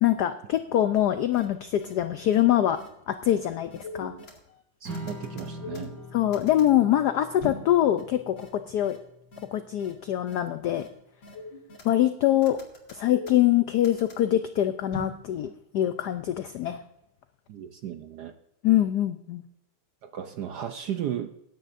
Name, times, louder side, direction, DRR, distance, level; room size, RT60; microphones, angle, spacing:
voice 1, 0.0-2.8 3.1-4.1 6.1-9.0 9.5-10.9 11.8-12.6 12.9-16.8 18.6-19.4, left 12 dB, 85° left, 9 dB, 0.8 m, -24 dB
sound 1, 0.9-1.0 1.3-1.4 1.8-1.9 2.3-2.4 2.8-2.9 3.2-3.4 3.7-4.5 4.9-6.7 7.4-7.7 8.0-8.1 8.4-8.5 8.8-9.0 9.3-9.4 9.8-9.9 10.3-10.4 10.7-10.9 11.2-12.1 12.4-14.2 14.9-15.2, left 1 dB, 60° left, 2.9 m, -40 dB
voice 2, 4.8-5.9 17.5-18.3 20.0-21.3, right 10 dB, 70° right, 7 dB, 0.9 m, -35 dB
Strum, 4.9-11.1, equal, 55° right, 3.4 m, -44 dB
19.0 x 9.9 x 2.6 m, 0.82 s
omnidirectional pair, 2.4 m